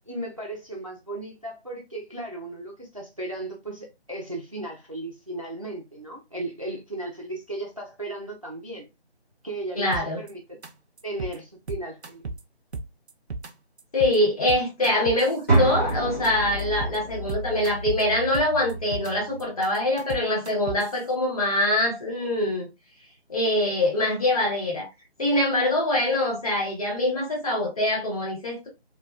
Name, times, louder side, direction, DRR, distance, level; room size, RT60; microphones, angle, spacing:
voice 1, 0.1-8.9 9.4-10.6 11.0-12.3, right 2 dB, 35° right, 0.4 m, -36 dB
voice 2, 9.8-10.2 13.9-22.7 23.3-24.9 25.2-28.7, left 1 dB, 35° left, 1.1 m, -24 dB
sound 1, 9.9-10.3 10.6-10.7 11.0-11.4 11.7-12.4 12.7-13.5 13.8-14.2 14.5-15.9 16.2-16.3 16.6-17.0 17.3-18.0 18.3-19.1 19.4-20.9, right 3 dB, 85° right, 0.6 m, -34 dB
sound 2, 15.5-19.4, right 2 dB, 15° left, 0.8 m, -28 dB
3.1 x 2.2 x 2.3 m
figure-of-eight pair, 160°, 32 cm